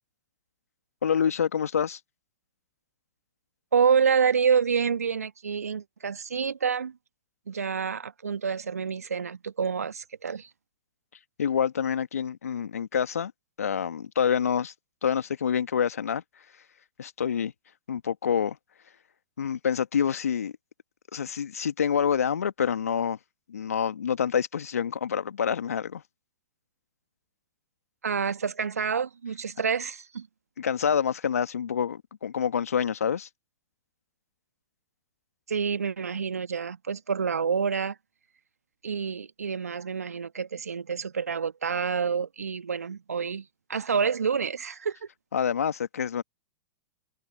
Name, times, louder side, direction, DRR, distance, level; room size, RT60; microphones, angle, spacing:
voice 1, 1.0-2.0 11.4-13.3 13.6-14.7 15.0-16.2 17.0-17.5 17.9-18.6 19.4-20.5 21.1-23.2 23.5-26.0 30.6-33.3 45.3-46.2, left 7 dB, 75° left, 1.8 m, -27 dB
voice 2, 3.7-7.0 7.5-10.5 28.0-30.3 35.5-38.0 38.8-45.1, right 6 dB, 80° right, 1.7 m, -28 dB
open air
figure-of-eight pair, 100°, 8 cm